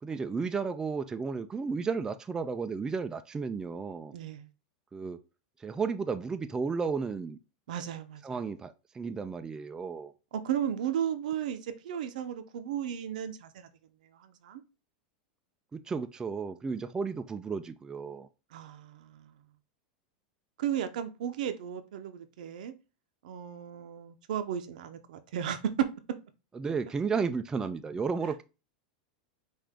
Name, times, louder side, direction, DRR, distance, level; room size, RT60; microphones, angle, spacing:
voice 1, 0.0-4.1 4.9-5.2 5.6-7.4 8.2-10.1 15.7-18.3 26.5-28.4, right 5 dB, 15° right, 0.4 m, -33 dB
voice 2, 4.1-4.5 7.7-8.4 10.3-13.7 14.1-14.6 18.5-19.4 20.6-22.7 23.2-25.9, right 9 dB, 80° right, 0.7 m, -34 dB
5.6 x 2.6 x 3.6 m
supercardioid pair, 120°, 4 cm